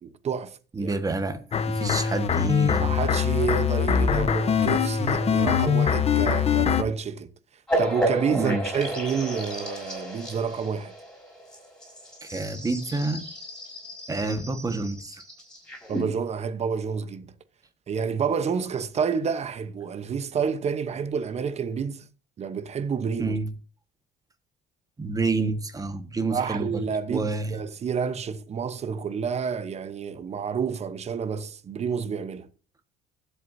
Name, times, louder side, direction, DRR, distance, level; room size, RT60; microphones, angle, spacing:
voice 1, 0.0-1.0 2.8-7.3 7.8-10.9 15.9-17.3 17.9-22.1 22.4-23.4 26.3-32.5, right 6 dB, 40° right, 1.0 m, -29 dB
voice 2, 0.7-1.4 1.6-3.0 8.3-8.6 12.2-13.2 14.1-15.2 23.2-23.5 25.0-26.8 27.1-27.6, right 3 dB, 20° right, 1.5 m, -28 dB
sound 1, 1.5-6.8, left 7 dB, 40° left, 0.9 m, -23 dB
sound 2, 7.7-16.0, right 1 dB, 5° left, 5.8 m, -32 dB
20.0 x 8.1 x 2.7 m
cardioid pair, 110°, 17 cm